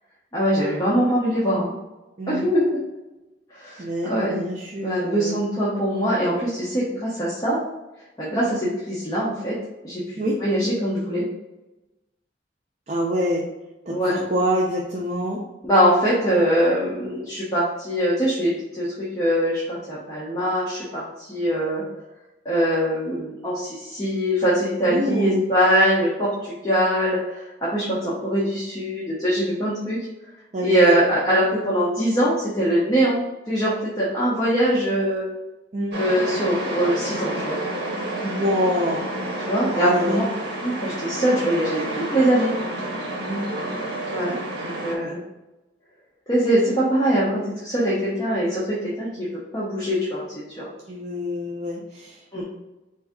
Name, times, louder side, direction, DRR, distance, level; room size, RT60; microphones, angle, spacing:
voice 1, 0.3-1.7 2.3-2.7 3.5-4.4 4.8-7.6 8.2-9.6 9.8-11.2 13.9-14.2 15.6-21.8 22.4-30.0 30.6-33.2 33.5-35.2 35.9-37.5 39.4-40.2 40.6-42.5 44.1-44.3 44.8-45.2 46.3-49.3 49.5-50.2 50.5-50.6 52.3-52.4, equal, 20° left, -8 dB, 0.8 m, -22 dB
voice 2, 3.8-5.4 10.2-10.4 12.9-13.5 13.9-15.4 24.9-25.4 30.5-31.0 35.7-36.0 38.2-39.0 39.7-40.2 43.3-43.5 44.9-45.1 50.9-52.4, equal, 35° right, -3 dB, 0.5 m, -26 dB
sound 1, 35.9-44.9, right 1 dB, 60° right, 0.9 m, -30 dB
3.8 x 2.7 x 3.5 m, 1.0 s
head